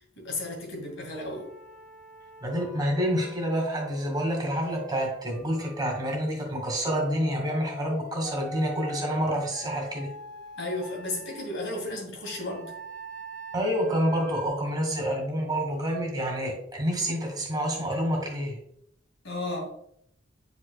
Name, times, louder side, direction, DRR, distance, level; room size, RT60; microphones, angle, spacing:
voice 1, 0.2-1.5 10.6-12.7 19.2-19.7, left 2 dB, 80° left, 0 dB, 2.3 m, -34 dB
Wind instrument woodwind instrument, 1.1-6.2 6.8-11.5 12.2-14.5, equal, 10° left, 1.5 m, -44 dB
voice 2, 2.4-10.1 13.5-18.6, equal, 20° right, 0 dB, 2.0 m, -28 dB
9.4 x 5.2 x 2.3 m, 0.71 s
head